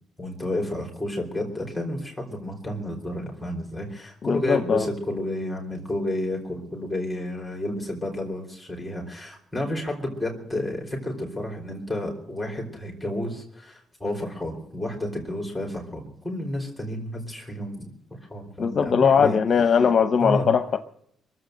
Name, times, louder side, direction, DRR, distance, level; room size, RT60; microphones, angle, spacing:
voice 1, 0.2-18.0 18.3-19.4 20.2-20.5, left 1 dB, 5° left, 3.6 m, -31 dB
voice 2, 4.2-4.9 18.6-20.8, left 6 dB, 50° left, 0.9 m, -20 dB
23.0 x 7.8 x 7.8 m
cardioid pair, 90°, 0 cm